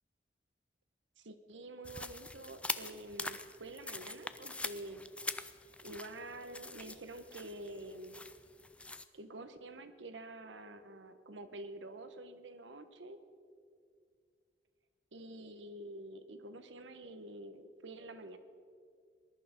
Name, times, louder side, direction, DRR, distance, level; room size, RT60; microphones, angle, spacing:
voice 1, 1.2-5.1 5.8-8.2 9.1-13.2 15.1-18.4, right 1 dB, 90° right, 10 dB, 1.1 m, -48 dB
sound 1, 1.8-9.0, left 2 dB, 5° left, 0.4 m, -44 dB
20.0 x 11.5 x 5.2 m, 2.2 s
head